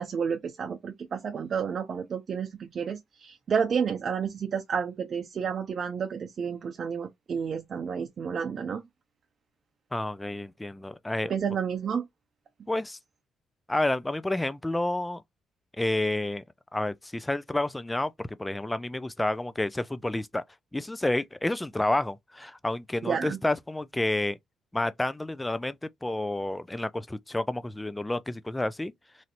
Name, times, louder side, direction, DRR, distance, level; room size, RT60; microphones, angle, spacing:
voice 1, 0.0-8.8 11.3-12.1 23.0-23.4, right 6 dB, 55° right, 0.6 m, -30 dB
voice 2, 9.9-11.3 12.7-13.0 13.7-15.2 15.8-16.4 16.7-18.1 18.4-20.4 20.7-24.4 24.7-28.9, left 1 dB, 15° left, 0.5 m, -29 dB
3.2 x 2.7 x 2.6 m
hypercardioid pair, 50°, 0 cm